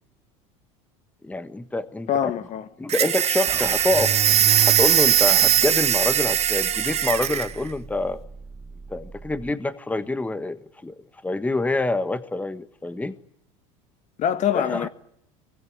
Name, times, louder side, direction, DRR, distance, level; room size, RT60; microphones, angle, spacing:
voice 1, 1.2-2.1 2.8-4.2 4.6-8.2 8.9-13.1 14.5-14.9, left 2 dB, 10° left, 1.4 m, -26 dB
voice 2, 2.1-2.7 14.2-14.9, left 9 dB, 45° left, 1.4 m, -24 dB
sound 1, 2.9-7.5, right 11 dB, 40° right, 1.4 m, -20 dB
sound 2, 3.5-9.5, right 6 dB, 20° right, 1.2 m, -36 dB
24.5 x 19.0 x 9.3 m
hypercardioid pair, 95°, 17 cm